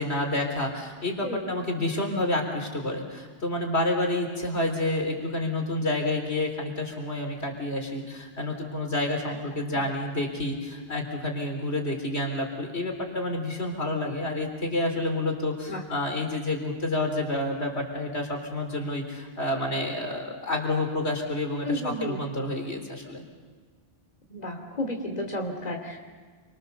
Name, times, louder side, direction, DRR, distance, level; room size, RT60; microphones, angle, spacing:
voice 1, 0.0-23.2, left 1 dB, 85° left, 2 dB, 4.1 m, -29 dB
voice 2, 21.6-22.2 24.3-26.0, left 1 dB, 40° left, 3 dB, 2.8 m, -32 dB
29.0 x 24.5 x 7.0 m, 1.5 s
omnidirectional pair, 1.1 m